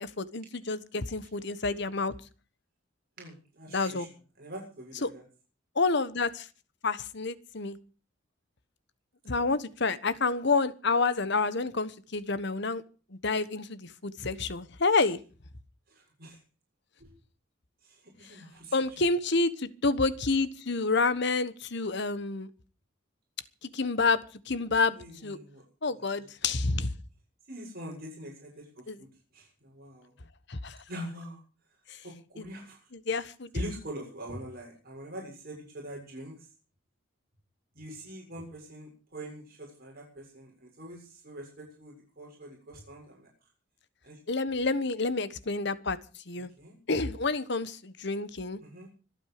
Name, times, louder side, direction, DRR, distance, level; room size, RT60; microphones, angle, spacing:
voice 1, 0.0-2.1 3.7-4.1 5.0-5.1 5.7-6.5 6.8-7.8 9.2-12.8 13.2-15.2 18.7-22.5 23.6-25.4 25.8-26.9 28.9-29.0 30.5-30.8 31.9-32.0 33.1-33.5 44.3-46.0 46.3-46.5 46.9-48.6, left 3 dB, 60° left, 15 dB, 1.3 m, -29 dB
voice 2, 3.2-4.1 4.4-5.2 9.3-9.5 15.9-16.4 17.0-17.1 17.8-18.8 25.0-25.6 26.2-26.5 27.5-29.1 29.3-30.1 30.9-31.4 32.0-32.8 33.5-36.5 37.7-43.3 44.0-44.2 46.6-46.7 48.6-48.9, right 1 dB, 50° right, 0 dB, 7.0 m, -44 dB
25.5 x 9.1 x 5.0 m, 0.37 s
head